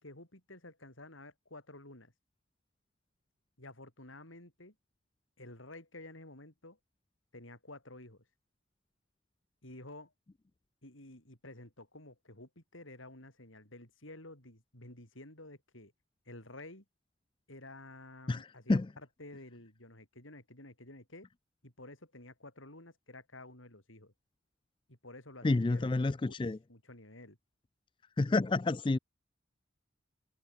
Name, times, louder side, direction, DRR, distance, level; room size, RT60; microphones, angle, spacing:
voice 1, 0.0-2.1 3.6-4.7 5.4-6.8 7.3-8.2 9.6-10.1 10.8-15.9 16.3-16.8 17.5-21.3 21.6-24.1 24.9-25.9 26.7-27.4, left 2 dB, 85° left, 7.2 m, -51 dB
voice 2, 18.3-18.9 25.4-26.6 28.2-29.0, left 2 dB, 25° left, 0.4 m, -29 dB
head